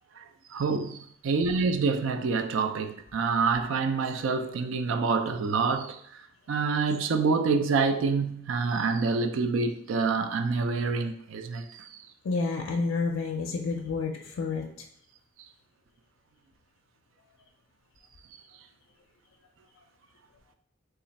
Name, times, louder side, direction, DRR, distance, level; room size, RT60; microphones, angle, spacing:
voice 1, 0.2-12.0, right 4 dB, 75° right, 0.4 m, -27 dB
voice 2, 12.2-14.7, left 4 dB, 80° left, 0.4 m, -29 dB
3.2 x 2.4 x 4.0 m
head